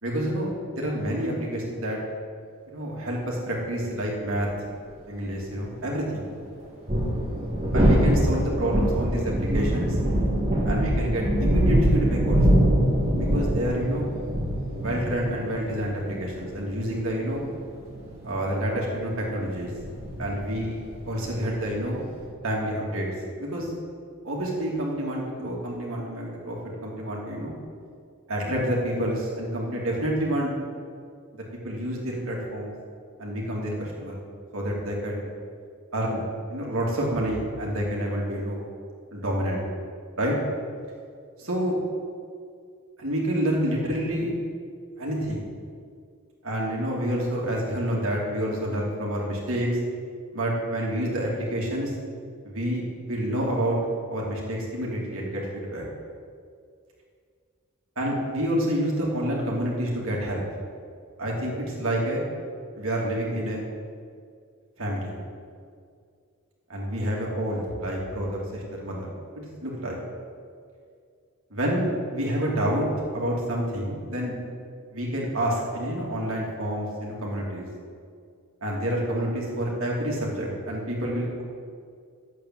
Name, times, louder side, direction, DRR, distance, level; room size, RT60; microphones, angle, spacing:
voice 1, 0.0-2.0 2.7-4.5 5.1-6.3 7.7-10.0 10.6-12.6 13.2-14.1 14.8-17.4 18.2-19.7 20.2-22.0 22.4-23.1 23.4-23.7 24.2-26.6 26.8-27.6 28.3-30.5 31.3-32.7 33.2-34.1 34.5-35.2 35.9-36.2 36.5-38.6 39.1-39.6 40.2-40.4 41.4-41.8 43.0-44.3 45.0-45.4 46.4-49.7 50.3-51.9 52.4-53.8 54.1-55.8 58.0-60.4 61.2-62.2 62.7-63.7 64.8-65.2 66.7-69.0 69.6-70.0 71.5-74.3 74.9-77.7 78.6-81.4, equal, 60° right, -3 dB, 2.9 m, -28 dB
sound 1, 4.5-4.6 6.6-22.3, equal, 30° right, 3.2 m, -24 dB
10.5 x 8.3 x 7.7 m, 2.2 s
head